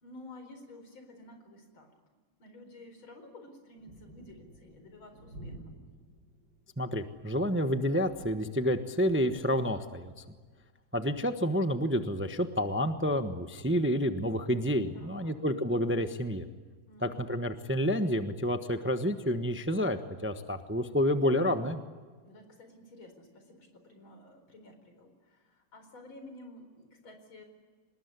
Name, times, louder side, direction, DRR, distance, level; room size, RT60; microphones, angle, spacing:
voice 1, 0.0-1.9 2.4-5.7 14.9-15.4 16.9-17.3 22.2-27.4, left 1 dB, 80° left, 6 dB, 5.2 m, -52 dB
sound 1, 3.7-12.1 13.4-13.8 16.4-16.5 16.9-17.0, right 1 dB, 55° right, 6.7 m, -54 dB
voice 2, 6.8-10.1 10.9-16.5 17.0-21.8, equal, 10° right, 8 dB, 0.8 m, -29 dB
26.0 x 20.0 x 9.6 m, 1.5 s
omnidirectional pair, 2.2 m